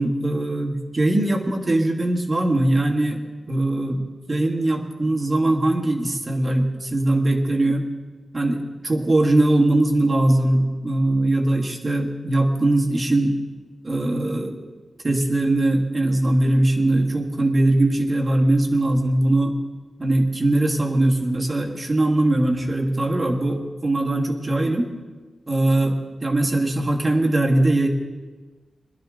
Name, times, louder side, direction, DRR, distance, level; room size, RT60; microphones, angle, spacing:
voice 1, 0.0-3.2 3.5-7.9 8.3-13.4 13.8-14.6 15.0-19.6 20.0-24.9 25.5-27.9, right 1 dB, 30° right, 1 dB, 1.8 m, -21 dB
21.0 x 12.0 x 3.8 m, 1.3 s
wide cardioid pair, 110°, 0 cm